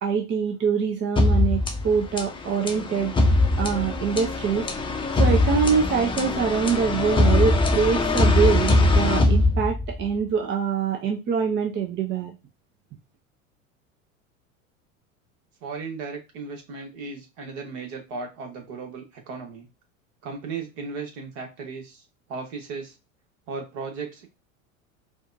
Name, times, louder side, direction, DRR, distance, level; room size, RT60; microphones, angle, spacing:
voice 1, 0.0-4.7 5.1-12.3, right 6 dB, 25° right, 2 dB, 0.6 m, -24 dB
sound 1, 1.2-10.1, left 2 dB, 10° left, 0.7 m, -22 dB
voice 2, 15.6-19.7 20.2-22.0 22.3-22.9 23.5-24.3, right 4 dB, 50° right, 2 dB, 1.6 m, -36 dB
4.4 x 2.4 x 2.6 m, 0.25 s
figure-of-eight pair, 80°, 42 cm